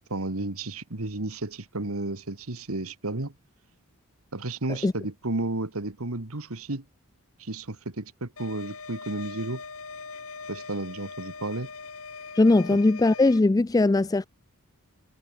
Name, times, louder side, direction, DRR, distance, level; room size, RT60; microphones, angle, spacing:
voice 1, 0.0-3.3 4.3-6.8 7.4-9.6 10.5-11.7 12.7-12.8, right 2 dB, 75° right, 1.9 m, -32 dB
sound 1, 8.4-13.4, left 4 dB, 70° left, 2.2 m, -41 dB
voice 2, 12.3-14.3, left 2 dB, 15° left, 0.3 m, -20 dB
head